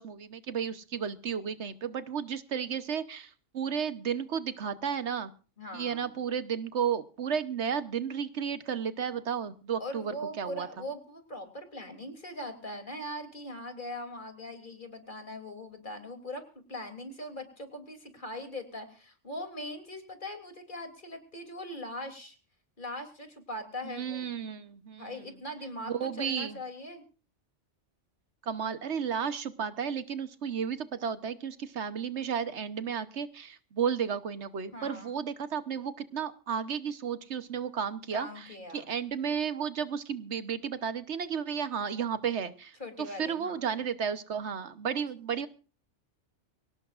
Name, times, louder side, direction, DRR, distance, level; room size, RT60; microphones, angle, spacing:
voice 1, 0.0-5.3 5.7-10.7 23.8-25.1 25.8-26.6 28.4-38.5 38.7-45.5, right 7 dB, 70° right, 12 dB, 1.3 m, -33 dB
voice 2, 5.6-6.1 9.8-22.4 22.8-24.3 25.0-27.0 34.7-35.2 38.1-38.9 42.8-43.6, left 1 dB, 45° left, 5 dB, 3.2 m, -41 dB
24.0 x 17.5 x 2.5 m, 0.36 s
omnidirectional pair, 1.2 m